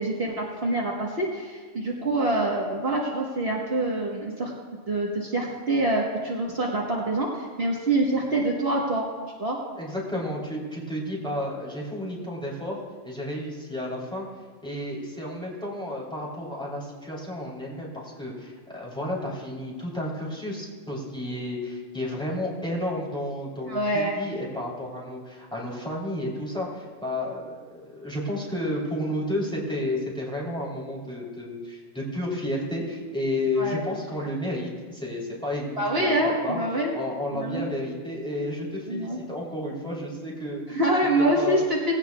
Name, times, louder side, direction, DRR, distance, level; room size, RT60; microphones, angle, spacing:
voice 1, 0.0-4.5 4.9-9.1 9.4-9.6 23.7-24.2 33.6-33.8 35.8-36.9 37.3-37.6 38.9-39.2 40.7-41.9, right 1 dB, 50° right, -3 dB, 1.6 m, -25 dB
voice 2, 9.8-14.3 14.6-36.6 36.9-40.8 41.2-41.6, left 1 dB, 5° left, -5 dB, 3.4 m, -32 dB
18.5 x 16.5 x 2.4 m, 1.5 s
omnidirectional pair, 1.3 m